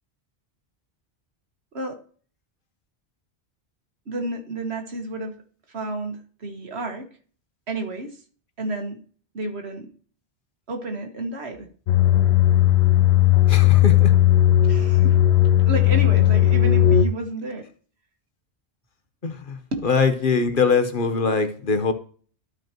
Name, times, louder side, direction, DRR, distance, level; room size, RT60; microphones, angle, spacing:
voice 1, 4.1-5.4 5.7-7.1 7.7-8.2 8.6-9.0 9.3-9.9 10.7-11.7 14.7-15.2 15.7-17.7 19.7-19.8, right 1 dB, 75° right, 1.7 m, -30 dB
sound 1, 11.9-17.1, left 12 dB, 75° left, 0.9 m, -16 dB
voice 2, 13.5-14.1 19.2-21.9, left 4 dB, 55° left, 1.1 m, -22 dB
13.0 x 5.0 x 3.0 m
omnidirectional pair, 1.1 m